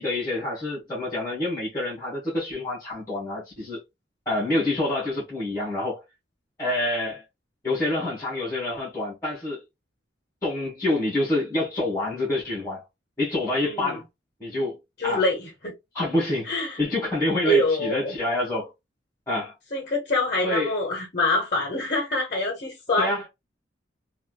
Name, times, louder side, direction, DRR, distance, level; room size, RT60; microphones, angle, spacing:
voice 1, 0.0-3.8 4.2-6.0 6.6-7.2 7.6-9.6 10.4-12.8 13.2-14.0 14.4-14.8 15.0-15.2 15.9-16.5 16.8-18.7 19.3-19.5 20.4-20.7 23.0-23.2, left 2 dB, 15° left, 1.4 m, -27 dB
voice 2, 13.6-14.0 15.0-15.7 16.4-16.8 17.4-18.2 19.7-23.2, left 1 dB, 45° left, 1.0 m, -25 dB
3.3 x 2.5 x 2.3 m
head